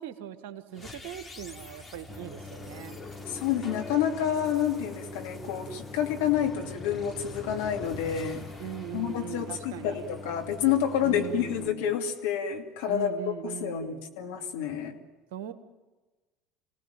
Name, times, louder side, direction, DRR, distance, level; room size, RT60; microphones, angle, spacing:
voice 1, 0.0-3.0 8.6-10.2 11.0-11.9 12.9-14.0 15.3-15.5, right 11 dB, 65° right, 11 dB, 1.5 m, -40 dB
sound 1, 0.7-9.9, left 3 dB, 20° left, 4.2 m, -45 dB
Idling, 2.1-11.7, left 2 dB, 5° left, 2.2 m, -45 dB
voice 2, 3.3-8.5 8.9-15.0, left 9 dB, 70° left, 3 dB, 2.6 m, -29 dB
27.0 x 18.0 x 9.2 m, 1.3 s
figure-of-eight pair, 70°, 0 cm